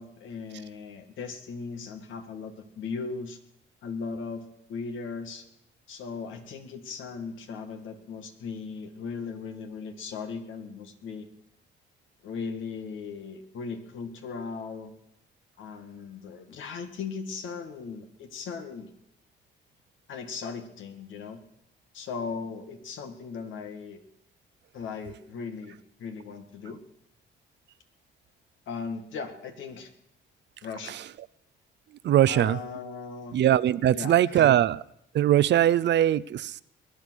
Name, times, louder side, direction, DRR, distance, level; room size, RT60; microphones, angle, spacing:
voice 1, 0.0-3.4 3.8-5.4 5.9-11.3 12.2-14.9 15.6-18.9 20.1-21.4 21.9-24.0 24.7-26.8 28.7-29.9 30.6-31.0 32.3-33.4 33.9-34.5, left 5 dB, 75° left, 7 dB, 2.0 m, -38 dB
voice 2, 32.0-32.6 33.3-34.8 35.1-36.6, right 12 dB, 65° right, 19 dB, 0.6 m, -21 dB
21.5 x 10.0 x 6.4 m, 0.75 s
cardioid pair, 90°, 20 cm